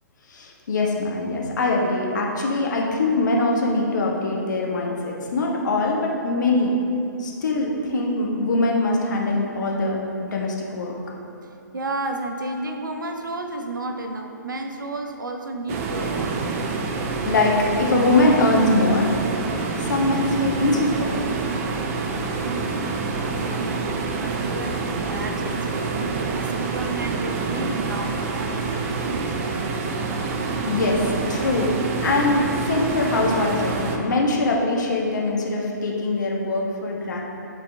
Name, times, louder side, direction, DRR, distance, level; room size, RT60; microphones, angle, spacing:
voice 1, 0.3-6.7 7.2-10.9 17.2-19.2 19.9-21.1 30.7-31.0 31.3-31.7 32.0-37.2, left 2 dB, 65° left, -1 dB, 1.3 m, -22 dB
voice 2, 11.7-16.4 22.4-26.0 26.3-29.1, right 2 dB, 80° right, 4 dB, 0.8 m, -32 dB
sound 1, 15.7-34.0, right 4 dB, 40° right, 0.7 m, -27 dB
11.0 x 4.2 x 3.5 m, 2.7 s
figure-of-eight pair, 125°, 10 cm